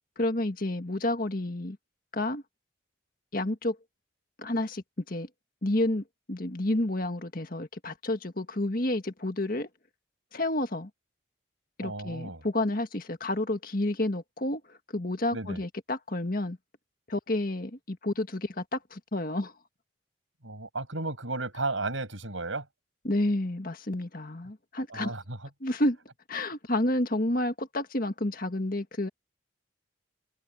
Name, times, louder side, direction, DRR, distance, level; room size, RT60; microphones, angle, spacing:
voice 1, 0.2-1.8 2.1-2.4 3.3-3.8 4.4-5.3 5.6-9.7 10.3-10.9 11.8-16.6 17.1-19.5 23.0-25.1 25.6-26.0 26.3-29.1, left 1 dB, 45° left, 1.7 m, -30 dB
voice 2, 11.8-12.4 15.3-15.6 20.4-22.7 24.9-25.5, right 2 dB, 85° right, 7.0 m, -34 dB
head